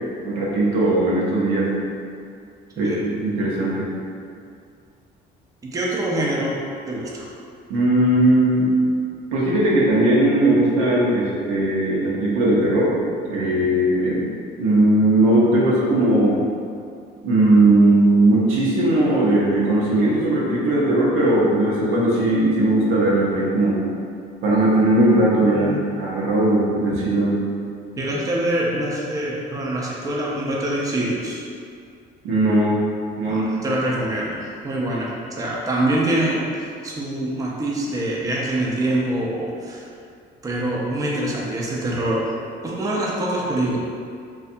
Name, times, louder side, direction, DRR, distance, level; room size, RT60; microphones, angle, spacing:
voice 1, 0.2-1.7 2.8-3.9 7.7-8.7 9.3-12.9 13.3-14.3 14.6-16.4 17.2-23.8 24.4-27.4 32.2-32.8 33.2-33.5, right 1 dB, 85° right, -6 dB, 0.7 m, -18 dB
voice 2, 5.6-6.6 6.9-7.3 25.5-25.9 28.0-31.4 33.3-39.9 40.4-42.3 42.6-43.8, right 1 dB, 15° right, -4 dB, 0.5 m, -25 dB
2.6 x 2.3 x 2.5 m, 2.3 s
supercardioid pair, 85°, 21 cm